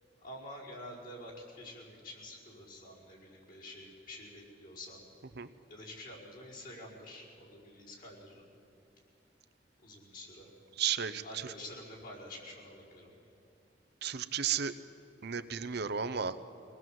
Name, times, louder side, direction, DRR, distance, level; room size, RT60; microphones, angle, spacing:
voice 1, 0.2-5.1 5.7-8.5 9.8-10.5 11.2-13.1, left 1 dB, 50° left, -5 dB, 5.3 m, -48 dB
voice 2, 10.8-11.5 14.0-14.7 15.2-16.4, right 7 dB, 60° right, 12 dB, 0.8 m, -33 dB
25.0 x 18.5 x 7.7 m, 2.8 s
head